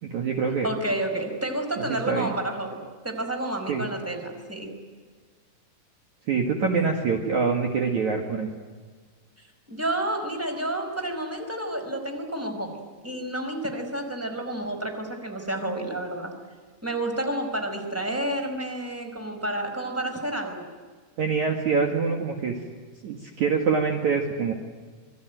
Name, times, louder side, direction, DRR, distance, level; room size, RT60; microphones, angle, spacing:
voice 1, 0.0-0.7 1.8-2.3 3.7-3.9 6.3-8.5 21.2-22.5 23.0-24.5, right 5 dB, 55° right, 2 dB, 2.9 m, -25 dB
voice 2, 0.6-4.7 9.7-16.3 16.8-20.7, right 1 dB, 5° right, 4 dB, 4.3 m, -30 dB
27.0 x 23.5 x 9.3 m, 1.5 s
omnidirectional pair, 4.7 m